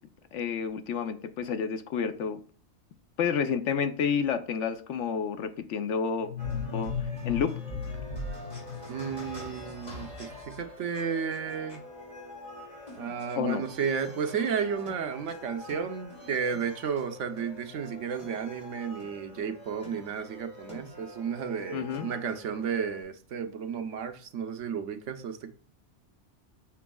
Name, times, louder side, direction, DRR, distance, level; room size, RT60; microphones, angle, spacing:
voice 1, 0.3-2.4 3.2-6.3 6.7-6.9 7.2-7.6 13.4-13.6 21.7-22.1, left 7 dB, 80° left, 1.0 m, -29 dB
sound 1, 6.2-9.9, left 8 dB, 60° left, 0.7 m, -37 dB
sound 2, 6.4-23.0, left 1 dB, 35° left, 2.8 m, -44 dB
voice 2, 8.9-11.8 13.0-25.5, right 6 dB, 80° right, 1.1 m, -33 dB
7.1 x 6.0 x 2.3 m
omnidirectional pair, 1.2 m